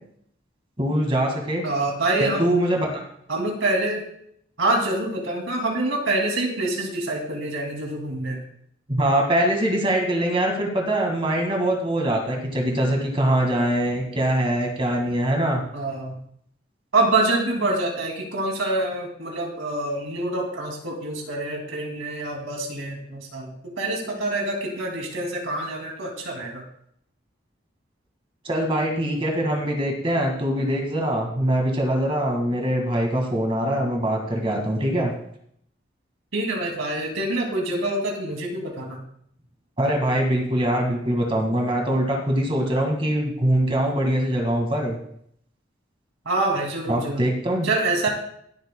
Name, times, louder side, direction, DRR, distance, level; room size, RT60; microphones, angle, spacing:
voice 1, 0.8-1.6 2.2-3.0 3.3-3.5 8.9-15.6 28.4-35.1 39.8-45.0 46.9-47.7, right 1 dB, 25° right, 1 dB, 1.9 m, -23 dB
voice 2, 1.6-2.4 3.3-4.1 4.6-8.4 15.7-16.2 16.9-26.6 36.3-39.0 46.3-47.3 47.6-48.1, right 2 dB, 90° right, 1 dB, 2.5 m, -26 dB
22.5 x 8.0 x 2.3 m, 0.68 s
head